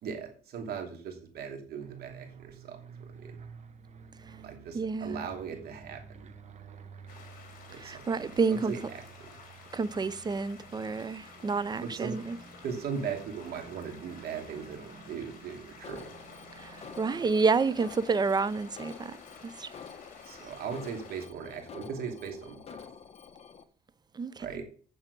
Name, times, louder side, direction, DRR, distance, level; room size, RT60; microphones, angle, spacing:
voice 1, 0.0-3.4 4.4-6.2 7.7-8.2 8.5-9.4 11.8-12.2 12.6-16.1 17.1-17.3 20.2-22.8 24.4-24.7, right 6 dB, 65° right, 2.8 m, -39 dB
sound 1, 1.8-17.8, right 5 dB, 45° right, 1.3 m, -51 dB
voice 2, 4.7-5.2 7.8-8.7 9.7-12.4 16.6-16.7 17.0-19.1 19.4-19.7 24.2-24.5, right 4 dB, 25° right, 0.6 m, -29 dB
sound 2, 7.1-21.3, left 5 dB, 55° left, 3.4 m, -52 dB
Alarm, 15.8-23.6, left 6 dB, 40° left, 1.2 m, -48 dB
9.0 x 7.1 x 5.3 m
cardioid pair, 110°, 17 cm